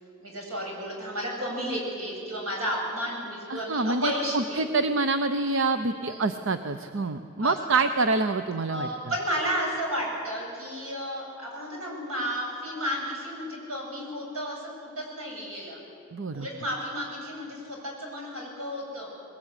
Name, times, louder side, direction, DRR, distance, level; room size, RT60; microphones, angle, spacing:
voice 1, 0.2-4.7 6.0-6.3 7.4-7.8 8.7-15.8 16.3-19.1, equal, 85° right, -1 dB, 8.0 m, -32 dB
voice 2, 3.5-8.9 16.1-16.5, right 3 dB, 65° right, 9 dB, 0.8 m, -26 dB
21.5 x 21.5 x 9.9 m, 2.4 s
head